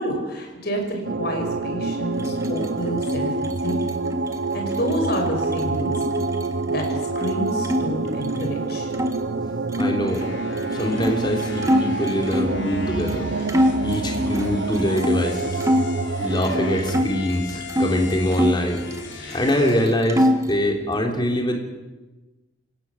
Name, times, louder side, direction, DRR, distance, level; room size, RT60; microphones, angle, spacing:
voice 1, 0.0-3.3 3.6-3.9 4.5-6.0 6.7-8.9, equal, 55° left, 2 dB, 6.0 m, -28 dB
sound 1, 1.0-17.0, right 3 dB, 65° right, 0.7 m, -27 dB
sound 2, 2.1-7.8 8.1-9.2 9.7-12.6 13.1-13.2 13.5-15.9 16.3-17.9 18.3-19.4 19.7-20.6, left 1 dB, 15° right, 1.6 m, -26 dB
voice 2, 9.8-10.3 10.7-13.3 13.8-15.6 16.2-18.8 19.3-21.6, left 1 dB, 25° left, 2 dB, 3.5 m, -23 dB
sound 3, 10.0-19.9, left 3 dB, 75° left, 3.2 m, -38 dB
27.5 x 16.0 x 7.3 m, 1.1 s
head